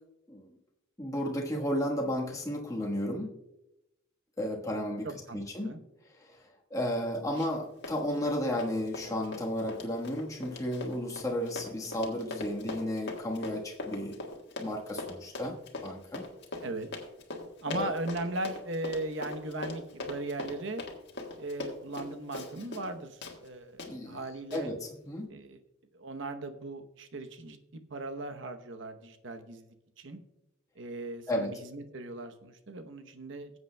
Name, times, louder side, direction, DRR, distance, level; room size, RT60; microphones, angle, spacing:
voice 1, 1.0-3.3 4.4-5.1 5.3-5.7 6.1-6.4 6.7-14.1 14.6-15.6 15.8-16.2 17.7-17.9 23.8-24.2 24.5-24.8 25.0-25.3 31.3-31.5, left 1 dB, 15° left, -1 dB, 1.3 m, -33 dB
voice 2, 5.0-5.8 16.6-16.9 17.6-20.8 21.4-24.7 25.3-25.6 25.9-29.7 30.0-30.2 30.8-33.5, right 2 dB, 65° right, 8 dB, 0.9 m, -38 dB
Run, 7.3-7.6 7.8-22.9 23.2-23.4 23.8-23.9 24.5-24.6, left 2 dB, 60° left, 1.5 m, -40 dB
19.0 x 8.0 x 2.2 m, 0.90 s
head